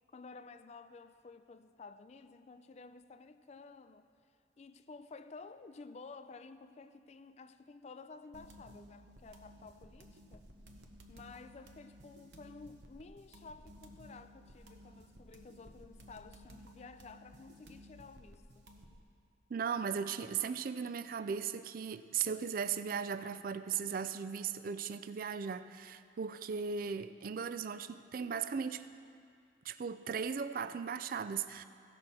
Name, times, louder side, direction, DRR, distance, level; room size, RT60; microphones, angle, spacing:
voice 1, 0.1-4.1 4.6-10.5 11.1-18.7, left 4 dB, 40° left, 0.4 m, -53 dB
sound 1, 8.3-19.0, equal, 75° right, 0.9 m, -56 dB
voice 2, 19.5-28.9 29.6-31.6, right 6 dB, 50° right, 0.4 m, -37 dB
16.5 x 6.3 x 4.2 m
head